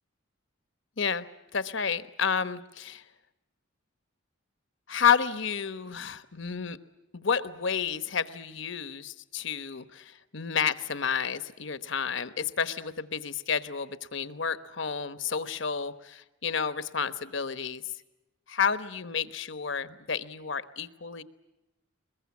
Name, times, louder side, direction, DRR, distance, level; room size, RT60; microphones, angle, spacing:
voice 1, 1.5-3.0 4.9-6.8 7.1-17.8 18.5-21.2, left 6 dB, 60° left, 12 dB, 1.1 m, -30 dB
22.5 x 21.5 x 9.6 m, 0.96 s
head